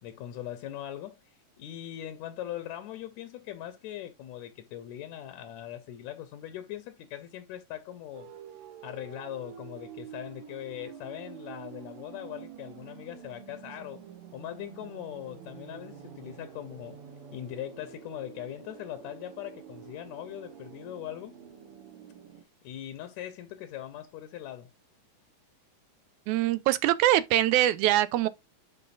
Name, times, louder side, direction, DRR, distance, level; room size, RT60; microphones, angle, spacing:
voice 1, 0.0-8.3 8.8-14.0 14.3-17.0 17.3-21.4 22.6-24.7, left 12 dB, 80° left, 2.0 m, -40 dB
sound 1, 8.1-22.4, right 8 dB, 60° right, 1.7 m, -48 dB
voice 2, 26.3-28.3, right 13 dB, 80° right, 2.1 m, -23 dB
11.0 x 3.8 x 2.5 m
omnidirectional pair, 3.4 m